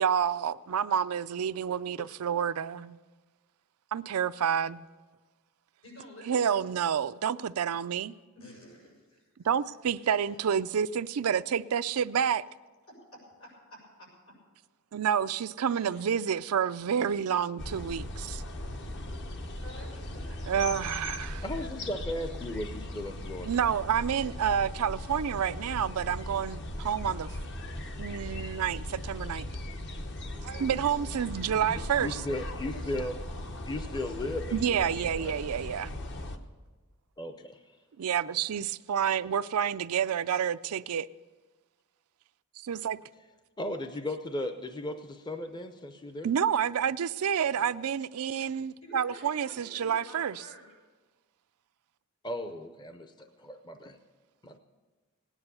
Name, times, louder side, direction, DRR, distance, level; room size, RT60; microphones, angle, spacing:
voice 1, 0.0-3.0 3.9-4.9 6.3-8.1 9.4-12.4 14.9-18.4 20.5-21.4 23.4-27.3 28.0-29.4 30.4-32.2 34.5-36.0 38.0-41.1 42.6-43.0 46.2-50.4, right 8 dB, 90° right, 0.4 m, -29 dB
voice 2, 5.8-6.6 8.3-9.5 12.9-14.4 15.6-16.4 19.6-20.8 31.2-33.1 47.5-47.6 48.8-50.7, equal, 80° left, 6.6 m, -51 dB
sound 1, 17.6-36.4, left 1 dB, 55° left, 1.0 m, -38 dB
voice 3, 21.4-23.5 31.7-33.2 33.7-35.3 37.2-37.6 43.6-46.3 52.2-54.0 54.4-54.6, left 1 dB, 20° left, 0.6 m, -36 dB
18.0 x 9.9 x 6.8 m
head